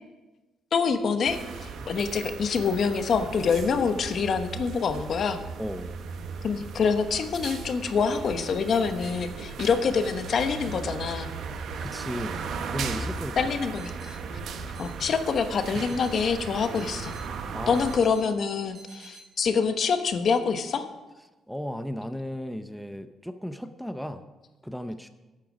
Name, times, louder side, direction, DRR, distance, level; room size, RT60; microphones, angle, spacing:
voice 1, 0.7-5.4 6.4-11.3 13.4-14.2 14.8-17.1 17.7-20.9, left 5 dB, 55° left, 9 dB, 1.0 m, -26 dB
sound 1, 1.2-18.0, right 5 dB, 70° right, 1.1 m, -37 dB
voice 2, 5.6-6.0 11.8-13.4 17.5-17.9 21.5-24.2 24.6-25.1, equal, ahead, 9 dB, 0.6 m, -35 dB
sound 2, 13.7-14.1 14.7-15.1 15.7-16.2 16.7-17.2 17.7-18.2 18.7-19.2, right 3 dB, 45° right, 3.5 m, -50 dB
11.5 x 8.9 x 5.0 m, 1.1 s
cardioid pair, 90°, 0 cm